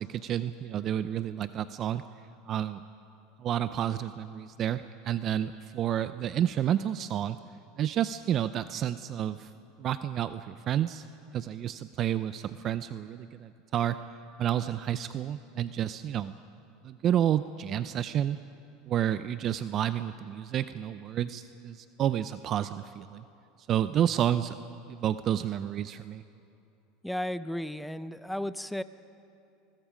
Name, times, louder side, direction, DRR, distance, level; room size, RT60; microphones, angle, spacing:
voice 1, 0.0-2.0 2.5-2.8 3.4-7.4 7.8-9.5 9.8-11.1 11.3-14.0 14.4-16.3 16.8-18.4 18.9-23.2 23.7-24.5 24.9-26.2, right 10 dB, 40° right, 13 dB, 0.5 m, -30 dB
voice 2, 27.0-28.8, left 1 dB, ahead, 14 dB, 0.7 m, -34 dB
27.0 x 21.0 x 5.1 m, 2.7 s
supercardioid pair, 115°, 0 cm